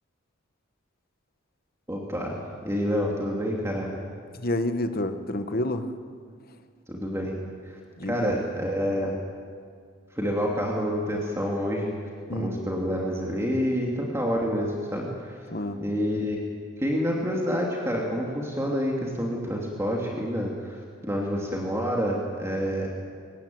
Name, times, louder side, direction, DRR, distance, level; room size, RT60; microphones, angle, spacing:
voice 1, 1.9-3.9 6.9-7.3 8.0-9.1 10.2-11.9 12.3-15.4 15.8-16.4 16.8-20.8 21.0-22.9, equal, 15° right, -2 dB, 2.6 m, -28 dB
voice 2, 4.4-5.9 8.0-8.3 12.3-12.6 15.5-15.8, left 1 dB, 45° left, 8 dB, 1.3 m, -29 dB
23.0 x 18.5 x 9.4 m, 2.1 s
head